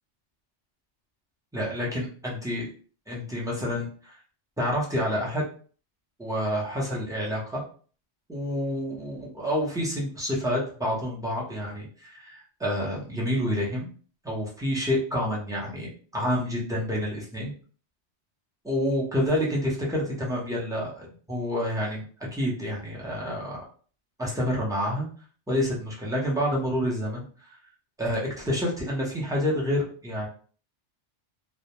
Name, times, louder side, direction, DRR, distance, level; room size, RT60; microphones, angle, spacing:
voice 1, 1.5-2.7 3.1-4.1 4.6-5.4 6.2-7.6 8.3-13.9 14.2-17.5 18.6-22.0 22.3-23.6 24.2-25.1 25.5-27.2 28.0-30.3, equal, 5° right, -5 dB, 0.5 m, -28 dB
2.2 x 2.1 x 2.9 m, 0.42 s
omnidirectional pair, 1.2 m